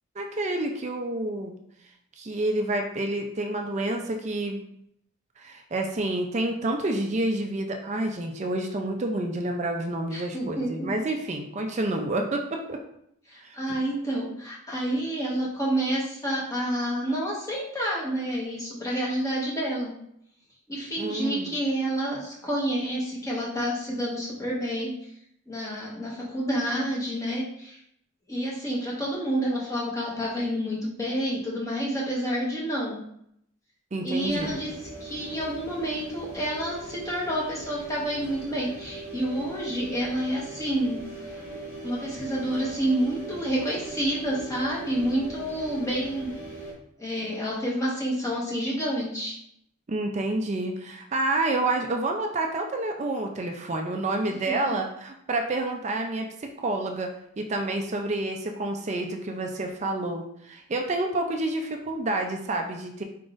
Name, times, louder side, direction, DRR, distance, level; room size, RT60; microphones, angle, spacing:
voice 1, 0.2-1.5 2.2-4.6 5.4-12.8 13.4-13.7 21.0-21.5 33.9-34.5 49.9-63.0, right 2 dB, 35° right, 3 dB, 0.4 m, -29 dB
voice 2, 10.1-10.9 13.3-19.9 20.7-24.9 25.5-27.8 28.3-33.0 34.0-34.7 35.0-41.0 41.8-46.3 47.0-49.3 54.3-54.7, right 1 dB, 15° left, -5 dB, 1.1 m, -29 dB
sound 1, 34.2-46.7, right 2 dB, 40° left, 1.2 m, -40 dB
4.7 x 3.9 x 2.5 m, 0.72 s
head